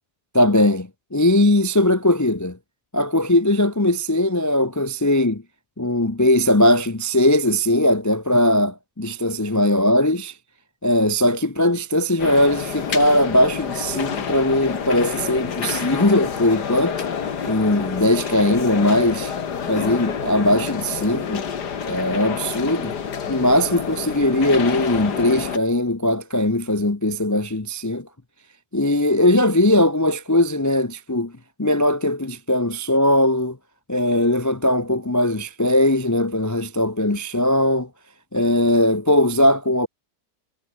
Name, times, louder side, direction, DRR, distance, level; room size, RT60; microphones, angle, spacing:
voice 1, 0.3-2.6 2.9-5.4 5.8-10.3 10.8-17.0 17.5-19.3 19.7-21.4 21.8-22.9 23.3-28.1 28.7-31.3 31.6-33.6 33.9-37.9 38.3-39.9, left 1 dB, 30° left, 0.3 m, -19 dB
sound 1, 12.2-25.6, left 7 dB, 65° left, 2.3 m, -28 dB
omnidirectional pair, 1.9 m